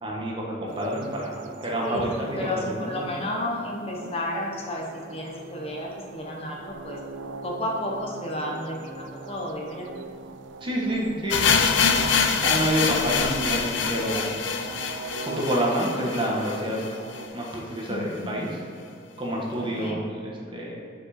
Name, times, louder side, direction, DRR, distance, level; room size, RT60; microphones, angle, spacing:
voice 1, 0.0-3.0 10.6-11.5 12.4-14.3 15.2-16.8 17.3-18.5 19.2-20.8, right 1 dB, 25° right, -3 dB, 1.3 m, -28 dB
sound 1, 0.7-17.3, right 4 dB, 90° right, 0.4 m, -41 dB
voice 2, 1.8-7.0 7.4-9.9 17.9-18.2 19.6-20.0, left 1 dB, 30° left, -1 dB, 0.9 m, -32 dB
sound 2, 11.3-17.2 17.5-17.6 17.8-17.9 18.5-18.6, left 6 dB, 80° left, 0.6 m, -25 dB
7.5 x 5.3 x 4.3 m, 2.5 s
head